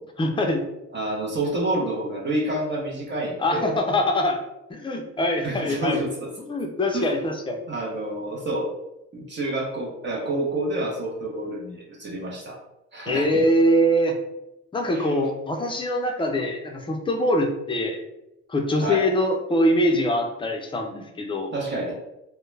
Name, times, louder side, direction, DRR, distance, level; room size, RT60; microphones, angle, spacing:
voice 1, 0.2-0.7 3.4-4.4 4.7-6.0 6.5-7.6 13.1-14.1 14.7-18.0 18.5-21.5, equal, 15° left, 3 dB, 0.4 m, -23 dB
voice 2, 0.9-3.7 5.4-6.3 6.9-7.1 7.7-8.7 9.1-12.6 12.9-13.5 14.9-15.2 18.8-19.1 21.5-21.9, right 1 dB, 35° right, -2 dB, 0.7 m, -28 dB
2.1 x 2.1 x 3.1 m, 0.89 s
cardioid pair, 90°, 30 cm